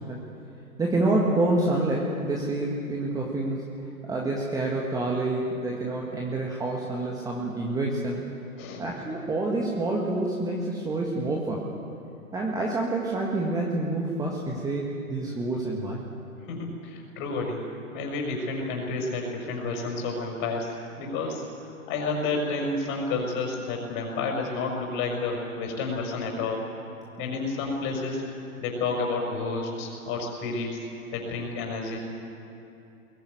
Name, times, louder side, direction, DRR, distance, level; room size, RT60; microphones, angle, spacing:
voice 1, 0.8-3.6 4.1-8.2 8.8-11.7 12.3-16.0 27.3-27.4, right 2 dB, 10° right, -2 dB, 1.8 m, -27 dB
voice 2, 16.4-17.6 17.9-26.7 27.2-30.9 31.1-32.0, left 3 dB, 25° left, 1 dB, 5.5 m, -30 dB
22.0 x 18.0 x 9.5 m, 2.9 s
figure-of-eight pair, 120°, 43 cm